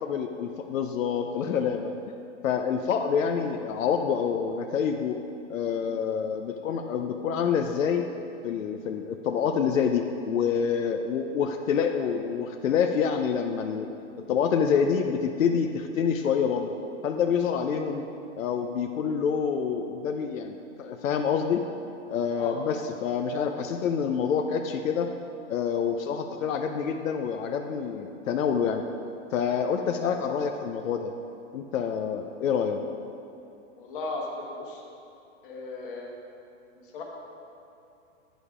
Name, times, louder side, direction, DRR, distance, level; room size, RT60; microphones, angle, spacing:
voice 1, 0.0-5.2 5.5-8.1 8.4-13.9 14.2-16.7 17.0-18.1 18.4-21.7 22.1-25.1 25.5-28.8 29.3-31.1 31.5-32.8, left 7 dB, 90° left, 5 dB, 0.6 m, -27 dB
voice 2, 33.8-34.8 35.4-36.1 36.8-37.0, left 3 dB, 45° left, 0 dB, 1.4 m, -36 dB
9.2 x 5.1 x 4.9 m, 2.7 s
hypercardioid pair, 160°, 38 cm